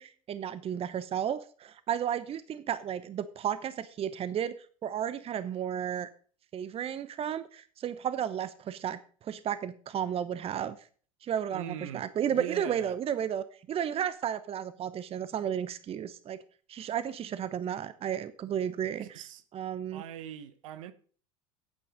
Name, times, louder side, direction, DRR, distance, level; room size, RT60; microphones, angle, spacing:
voice 1, 0.0-4.5 4.8-6.1 6.5-10.8 11.2-16.4 16.7-19.2 19.5-20.0, right 9 dB, 35° right, 0.9 m, -33 dB
voice 2, 11.5-13.0 19.0-19.4 19.9-20.9, right 11 dB, 70° right, 1.1 m, -41 dB
9.4 x 8.6 x 5.1 m
hypercardioid pair, 75°, 18 cm